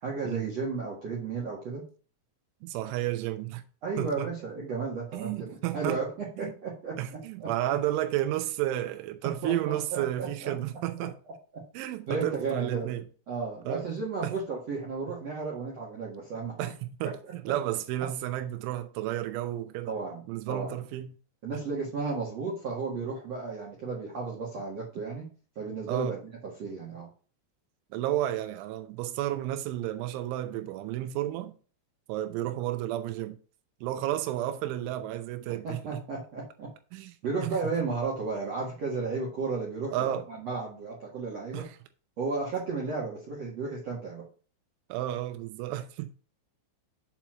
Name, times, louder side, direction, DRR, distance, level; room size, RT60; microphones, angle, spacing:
voice 1, 0.0-1.8 3.8-7.5 9.2-10.5 11.5-11.6 12.1-12.9 13.3-16.7 17.0-17.1 17.4-17.5 19.9-20.8 21.4-25.3 25.5-27.1 35.6-36.7 37.2-41.7 42.2-44.2, right 4 dB, 55° right, 1.8 m, -34 dB
voice 2, 2.6-3.6 4.0-4.3 5.1-6.0 6.4-6.5 7.0-11.2 11.7-13.1 13.7-13.8 14.2-14.3 16.6-19.9 20.3-21.1 25.9-26.2 27.9-31.6 32.1-33.4 33.8-36.0 36.9-37.1 39.9-40.3 41.5-41.8 42.5-42.7 44.9-46.1, right 13 dB, 80° right, 3.1 m, -32 dB
7.2 x 4.6 x 5.9 m
omnidirectional pair, 5.7 m